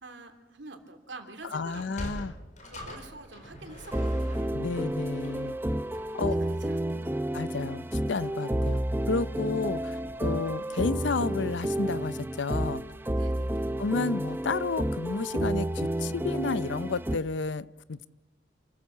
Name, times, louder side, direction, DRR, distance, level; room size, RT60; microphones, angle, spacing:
voice 1, 0.0-1.9 2.6-4.4 6.2-7.2 13.1-13.7, right 3 dB, 85° right, 5 dB, 3.0 m, -47 dB
voice 2, 1.5-2.3 4.5-5.6 6.1-6.4 7.3-12.8 13.8-18.1, left 4 dB, 85° left, 17 dB, 0.6 m, -31 dB
Sliding door, 1.6-6.2, left 1 dB, 40° left, 4.1 m, -43 dB
sound 1, 3.9-17.2, right 1 dB, 10° right, 0.6 m, -30 dB
28.0 x 14.0 x 7.4 m, 1.1 s
head